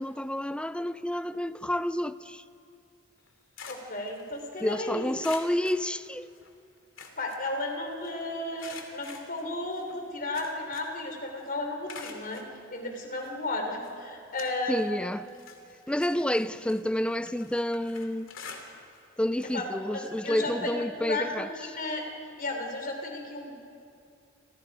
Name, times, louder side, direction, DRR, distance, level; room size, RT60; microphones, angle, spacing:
voice 1, 0.0-2.4 4.6-6.3 14.7-15.3 15.9-18.3 19.2-21.5, left 1 dB, 5° left, 0.5 m, -29 dB
sound 1, 3.2-4.7 5.2-6.5 6.8-8.1 8.6-11.1 11.4-12.5 13.2-13.3 13.8-14.9 15.3-19.1 19.3-19.6 19.9-20.0 21.2-21.3, left 5 dB, 75° left, 2.8 m, -47 dB
voice 2, 3.7-5.1 7.2-12.4 12.7-15.2 19.5-22.1 22.4-23.5, left 2 dB, 45° left, 4.0 m, -34 dB
29.0 x 27.0 x 5.0 m
head